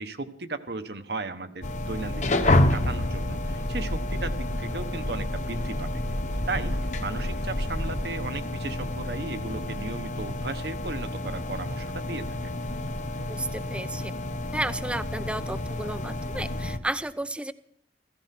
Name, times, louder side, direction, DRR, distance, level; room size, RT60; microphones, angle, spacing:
voice 1, 0.0-6.0 6.5-6.7 7.0-12.5, right 3 dB, 65° right, 9 dB, 1.2 m, -36 dB
sound 1, 1.6-16.8, left 1 dB, 45° left, 1.0 m, -30 dB
sound 2, 2.1-8.0, equal, 65° left, 1.6 m, -34 dB
voice 2, 13.3-14.1 14.5-17.5, right 1 dB, 5° right, 14 dB, 0.5 m, -32 dB
15.5 x 14.5 x 5.9 m, 0.69 s
head